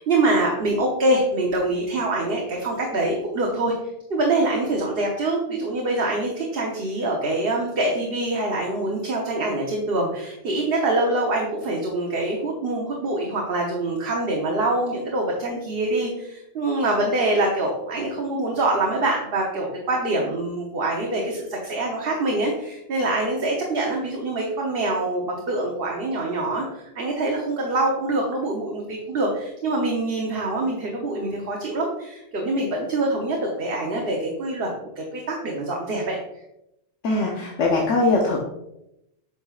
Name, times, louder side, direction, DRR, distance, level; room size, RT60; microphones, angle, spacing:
voice 1, 0.0-3.7 4.1-36.2, right 2 dB, 55° right, -1 dB, 1.2 m, -25 dB
voice 2, 37.0-38.4, left 2 dB, 85° left, -1 dB, 1.2 m, -21 dB
8.5 x 5.7 x 2.4 m, 0.84 s
omnidirectional pair, 1.2 m